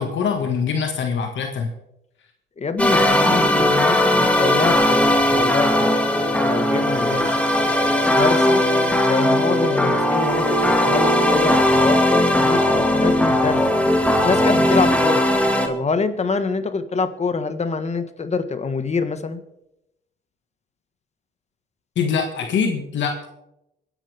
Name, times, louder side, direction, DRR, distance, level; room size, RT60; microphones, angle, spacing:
voice 1, 0.0-1.7 22.0-23.3, left 6 dB, 70° left, 4 dB, 1.9 m, -23 dB
voice 2, 2.6-5.0 5.3-6.0 6.4-7.2 8.1-8.6 9.0-10.4 10.8-13.6 14.2-15.2 15.7-19.4, left 4 dB, 35° left, 9 dB, 1.6 m, -25 dB
sound 1, 2.8-15.7, left 1 dB, 5° left, 2.1 m, -18 dB
25.5 x 10.5 x 3.6 m, 0.84 s
cardioid pair, 90°, 20 cm